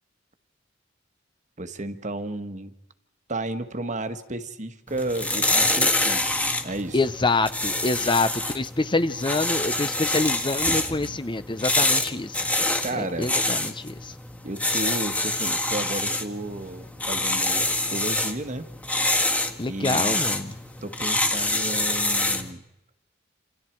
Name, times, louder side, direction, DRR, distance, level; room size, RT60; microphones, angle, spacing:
voice 1, 1.6-2.7 3.3-7.0 12.8-13.3 14.4-18.6 19.7-20.2 20.8-22.6, right 2 dB, 40° right, 9 dB, 1.5 m, -33 dB
sound 1, 4.9-22.5, left 2 dB, 5° left, 1.8 m, -26 dB
voice 2, 6.9-12.4 12.9-14.1 19.6-20.6, left 3 dB, 25° left, 12 dB, 0.8 m, -26 dB
28.0 x 27.5 x 4.6 m, 0.90 s
head